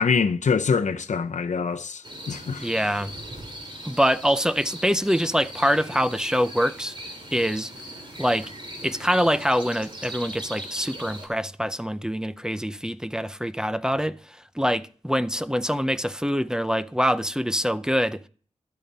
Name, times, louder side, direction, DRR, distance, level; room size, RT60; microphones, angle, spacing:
voice 1, 0.0-2.7, left 5 dB, 75° left, 0.7 m, -24 dB
sound 1, 2.0-11.3, right 1 dB, 40° right, 3.1 m, -39 dB
voice 2, 2.6-3.1 3.8-7.0 7.3-7.7 8.2-8.5 8.8-18.2, equal, 5° right, 0.5 m, -25 dB
12.5 x 8.9 x 4.1 m
wide cardioid pair, 85°, 12 cm